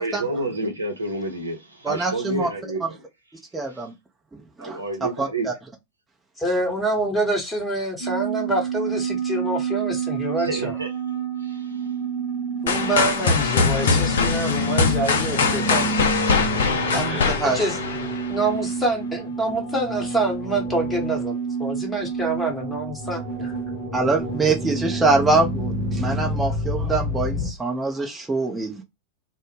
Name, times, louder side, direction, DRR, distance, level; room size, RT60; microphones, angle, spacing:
voice 1, 0.0-3.0 3.7-3.8 4.6-5.5 10.4-10.9 11.4-11.8, right 2 dB, 80° right, 0.6 m, -29 dB
voice 2, 1.8-2.5 3.5-3.9 4.6-5.5 16.9-17.6 23.9-28.8, right 3 dB, 10° right, 0.6 m, -24 dB
voice 3, 6.4-10.8 12.6-16.3 17.0-17.7 18.0-23.5, right 1 dB, 10° left, 0.9 m, -26 dB
sound 1, 8.0-27.5, right 3 dB, 35° left, 0.8 m, -28 dB
sound 2, 12.7-18.6, left 5 dB, 60° left, 0.4 m, -22 dB
2.0 x 2.0 x 3.0 m
figure-of-eight pair, 90°, 0 cm